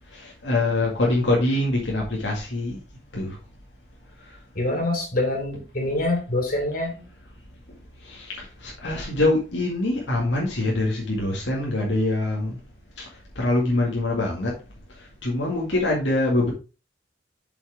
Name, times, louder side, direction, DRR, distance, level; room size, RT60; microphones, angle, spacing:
voice 1, 0.1-2.8 3.1-3.4 4.2-4.4 7.0-7.1 7.7-12.6 13.0-14.6 14.9-16.5, left 2 dB, 85° left, 2.1 m, -25 dB
voice 2, 4.5-7.0, left 1 dB, 50° left, 3.2 m, -25 dB
7.5 x 6.2 x 3.5 m
head